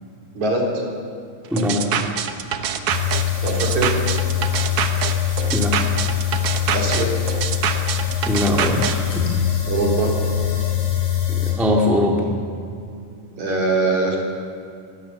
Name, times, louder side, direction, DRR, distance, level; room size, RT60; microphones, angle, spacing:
voice 1, 0.3-0.7 3.4-3.9 6.7-7.1 9.7-10.1 13.4-14.2, right 2 dB, 55° right, -1 dB, 4.4 m, -21 dB
voice 2, 1.5-1.9 5.5-5.8 8.2-9.3 11.3-12.4, left 1 dB, ahead, 0 dB, 1.3 m, -21 dB
sound 1, 1.6-9.0, right 8 dB, 75° right, 1.3 m, -25 dB
sound 2, 2.9-11.5, left 9 dB, 60° left, 5.8 m, -23 dB
24.5 x 16.5 x 7.1 m, 2.3 s
omnidirectional pair, 4.1 m